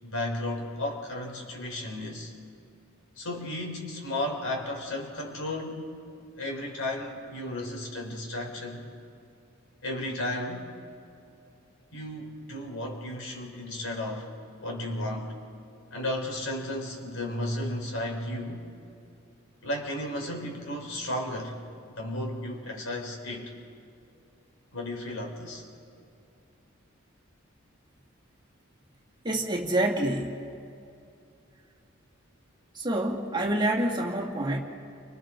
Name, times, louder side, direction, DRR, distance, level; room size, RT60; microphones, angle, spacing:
voice 1, 0.0-2.3 3.2-6.0 6.4-8.9 9.8-10.7 11.9-14.3 14.6-15.4 15.9-18.7 19.6-21.6 22.0-23.5 24.7-25.6, left 1 dB, 85° left, 0 dB, 4.2 m, -34 dB
voice 2, 29.2-30.4 32.7-34.6, right 1 dB, 20° right, -1 dB, 2.2 m, -27 dB
30.0 x 26.0 x 3.8 m, 2.6 s
head